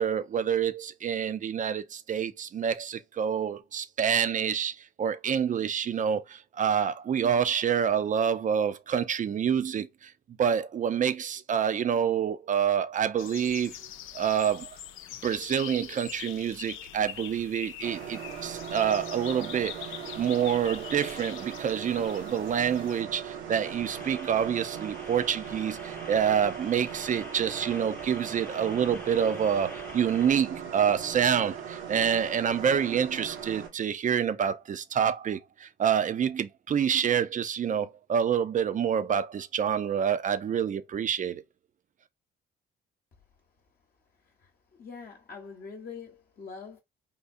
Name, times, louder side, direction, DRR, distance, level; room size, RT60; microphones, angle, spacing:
voice 1, 0.0-10.1 10.4-13.8 14.1-14.7 15.2-19.9 20.2-41.4, right 8 dB, 40° right, 0.4 m, -27 dB
sound 1, 13.2-23.0, left 11 dB, 90° left, 0.4 m, -43 dB
sound 2, 17.8-33.7, right 8 dB, 85° right, 1.0 m, -39 dB
sound 3, 23.6-30.3, left 1 dB, 10° left, 0.6 m, -46 dB
voice 2, 44.8-46.8, left 5 dB, 50° left, 0.9 m, -43 dB
3.6 x 2.3 x 2.5 m
cardioid pair, 90°, 20 cm